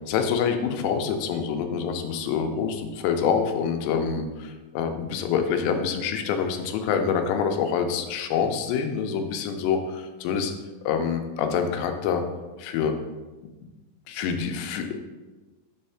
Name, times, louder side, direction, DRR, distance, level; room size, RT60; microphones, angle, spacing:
voice 1, 0.1-4.3 4.7-10.5 10.9-12.2 12.6-12.9 14.1-14.9, left 7 dB, 85° left, 6 dB, 2.8 m, -26 dB
6.3 x 3.2 x 5.6 m, 1.2 s
omnidirectional pair, 4.9 m